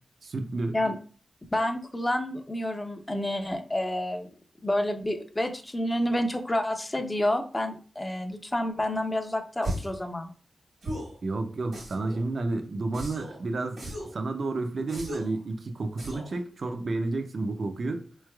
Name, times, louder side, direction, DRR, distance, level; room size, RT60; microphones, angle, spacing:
voice 1, 0.2-0.8 11.2-13.8 14.1-18.0, right 2 dB, 65° right, 0.5 m, -31 dB
voice 2, 1.5-4.3 4.6-10.3, left 1 dB, 20° left, 0.5 m, -29 dB
sound 1, 9.6-10.0 10.8-11.2 11.7-12.2 12.9-13.4 13.8-14.2 14.9-15.4 16.0-16.4, right 1 dB, 85° right, 1.4 m, -36 dB
4.2 x 3.2 x 2.3 m
wide cardioid pair, 90°, 0 cm